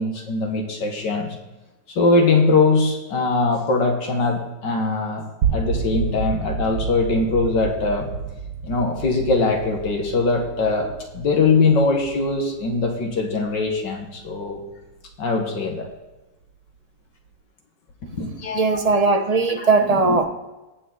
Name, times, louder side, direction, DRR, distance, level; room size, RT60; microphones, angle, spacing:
voice 1, 0.0-1.4 2.0-5.3 5.5-8.1 8.6-14.6 15.2-15.9 18.0-18.8 19.6-20.2, left 3 dB, 65° left, 3 dB, 2.2 m, -21 dB
Basket ball floor very large room, 5.4-15.4, right 6 dB, 90° right, 1.7 m, -30 dB
voice 2, 18.5-20.2, right 3 dB, 50° right, 5 dB, 0.4 m, -18 dB
18.5 x 7.6 x 4.0 m, 1.1 s
omnidirectional pair, 2.1 m